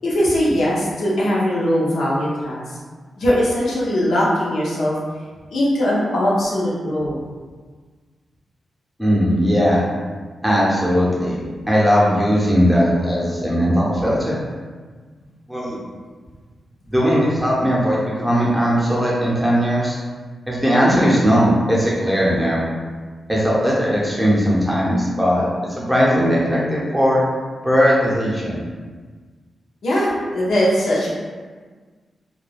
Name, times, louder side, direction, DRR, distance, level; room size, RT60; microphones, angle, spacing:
voice 1, 0.0-2.8 3.2-4.9 5.5-7.2 29.8-31.1, equal, 80° left, -6 dB, 0.7 m, -20 dB
voice 2, 9.0-9.8 10.4-11.4 11.7-14.4 15.5-15.8 16.9-20.0 20.5-22.7 23.3-25.5 25.8-27.2 27.6-28.6, equal, 5° right, -6 dB, 0.7 m, -18 dB
2.3 x 2.2 x 3.3 m, 1.5 s
wide cardioid pair, 110°, 0 cm